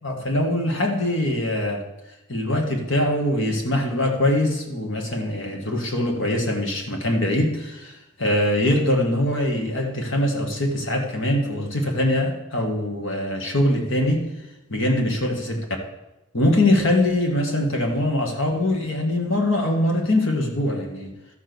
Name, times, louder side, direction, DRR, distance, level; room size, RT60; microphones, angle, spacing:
voice 1, 0.0-1.8 2.3-14.2 14.7-15.6 16.3-21.1, left 1 dB, 55° left, 2 dB, 2.0 m, -22 dB
13.0 x 6.3 x 7.0 m, 0.95 s
head